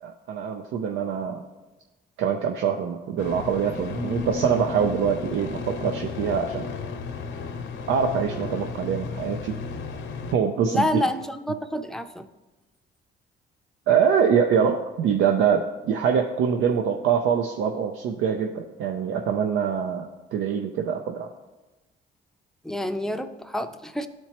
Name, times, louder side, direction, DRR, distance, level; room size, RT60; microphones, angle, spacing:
voice 1, 0.0-1.4 2.2-6.7 7.9-9.5 10.3-11.0 13.9-21.3, right 7 dB, 85° right, 4 dB, 0.5 m, -24 dB
sound 1, 3.2-10.4, left 5 dB, 70° left, 0.8 m, -34 dB
voice 2, 10.6-12.3 22.6-24.1, left 1 dB, ahead, 7 dB, 0.5 m, -28 dB
12.0 x 4.4 x 2.9 m, 1.1 s
cardioid pair, 90°, 20 cm